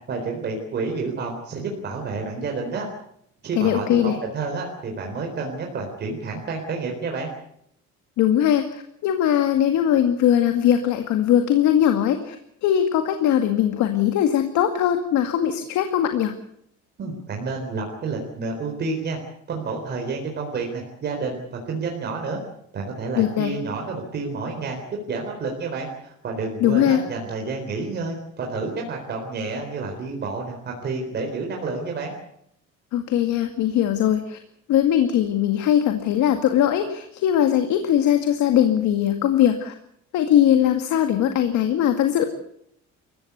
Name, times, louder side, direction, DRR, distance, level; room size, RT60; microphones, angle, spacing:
voice 1, 0.1-2.9 3.4-7.3 17.0-19.2 19.5-22.4 22.7-24.8 25.1-32.1, right 4 dB, 35° right, 1 dB, 3.9 m, -29 dB
voice 2, 3.6-4.2 8.2-12.4 12.6-16.3 23.2-23.5 26.6-27.0 32.9-34.4 34.7-39.7 40.1-42.2, left 10 dB, 70° left, 6 dB, 2.2 m, -20 dB
28.0 x 15.5 x 8.2 m, 0.73 s
cardioid pair, 175°, 30 cm